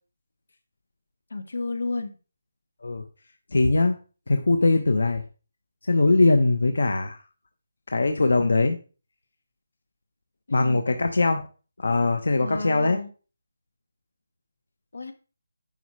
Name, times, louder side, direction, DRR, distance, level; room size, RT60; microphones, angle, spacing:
voice 1, 1.3-2.1 10.5-10.8 12.4-13.1 14.9-15.1, left 3 dB, 90° left, 8 dB, 1.6 m, -32 dB
voice 2, 3.5-4.0 4.3-5.2 5.8-7.2 7.9-8.8 10.5-11.5 11.8-13.0, left 3 dB, 70° left, 7 dB, 1.0 m, -21 dB
10.5 x 6.2 x 3.2 m, 0.35 s
hypercardioid pair, 180°, 0 cm